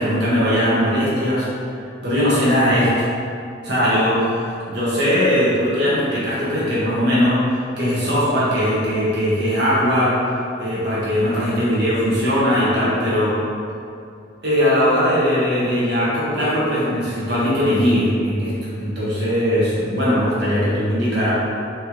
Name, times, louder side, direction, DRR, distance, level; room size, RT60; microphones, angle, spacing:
voice 1, 0.0-1.5 2.0-3.1 3.6-4.4 4.7-7.4 7.8-10.2 10.6-13.3 14.4-18.5 18.8-21.3, equal, 60° right, -9 dB, 1.4 m, -19 dB
4.3 x 3.2 x 3.0 m, 2.5 s
head